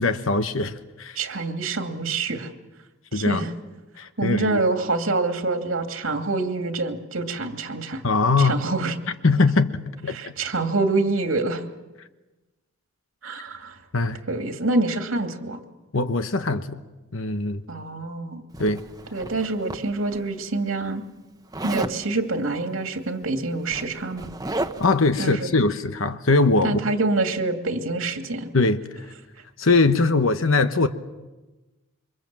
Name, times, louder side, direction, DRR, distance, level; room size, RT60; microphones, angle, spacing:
voice 1, 0.0-1.2 3.1-3.4 4.0-4.6 8.0-8.6 9.2-10.3 13.9-14.2 15.9-16.8 17.1-17.6 18.6-18.8 24.8-26.8 28.5-29.0 29.6-30.9, left 3 dB, 70° left, 1.1 m, -21 dB
voice 2, 1.2-2.5 3.1-3.5 4.2-8.0 8.4-8.9 10.1-11.6 13.2-13.8 14.3-15.6 17.7-18.4 19.1-21.0 21.6-24.3 25.2-25.5 26.6-28.5, right 3 dB, 75° right, 2.5 m, -26 dB
Zipper (clothing), 18.5-20.2 21.5-22.0 23.1-23.2 23.5-25.0, right 2 dB, 20° right, 1.0 m, -33 dB
27.5 x 24.5 x 7.6 m
head